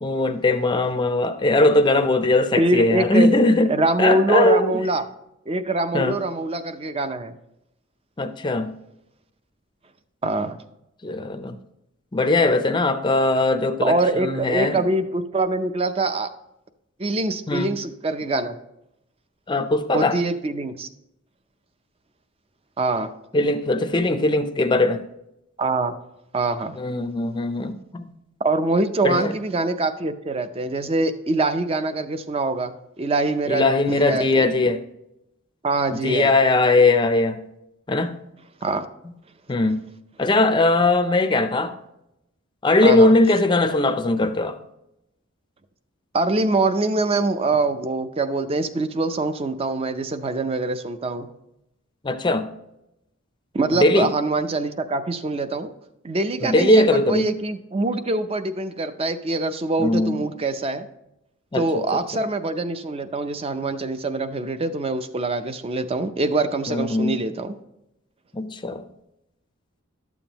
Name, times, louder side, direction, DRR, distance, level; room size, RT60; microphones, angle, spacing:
voice 1, 0.0-3.7 4.0-4.8 5.9-6.2 8.2-8.7 11.0-11.6 12.1-14.8 17.5-17.7 19.5-20.2 23.3-25.0 26.8-28.1 29.0-29.4 33.5-34.8 35.9-37.4 37.9-38.3 39.5-39.9 40.2-41.8 42.6-44.6 52.0-52.5 53.7-54.1 56.4-57.3 59.8-60.2 61.5-62.2 66.7-67.2 68.3-68.8, left 2 dB, 20° left, 0.5 m, -20 dB
voice 2, 2.6-3.3 3.7-5.0 5.5-7.4 10.2-10.6 13.8-16.3 17.0-18.6 19.9-20.9 22.8-23.1 25.6-26.0 26.3-26.8 28.4-34.7 35.6-36.3 38.6-38.9 42.8-43.2 46.1-51.3 53.5-55.7 56.0-60.9 61.5-67.6, right 2 dB, 25° right, 0.5 m, -24 dB
12.0 x 7.2 x 2.9 m
head